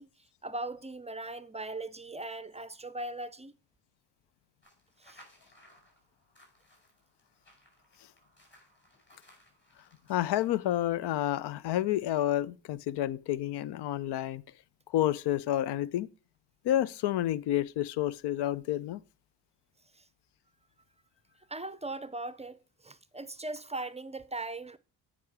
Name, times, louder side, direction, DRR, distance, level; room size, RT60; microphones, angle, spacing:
voice 1, 0.0-3.5 5.0-5.2 19.9-20.1 21.5-24.8, right 2 dB, 15° right, 0.5 m, -39 dB
Footsteps Dirt Gravel, 4.6-10.7, equal, 25° left, 5.4 m, -61 dB
voice 2, 10.1-14.4 14.9-16.1 16.6-19.0, left 13 dB, 75° left, 0.5 m, -29 dB
9.5 x 4.8 x 4.8 m
supercardioid pair, 60°, 41 cm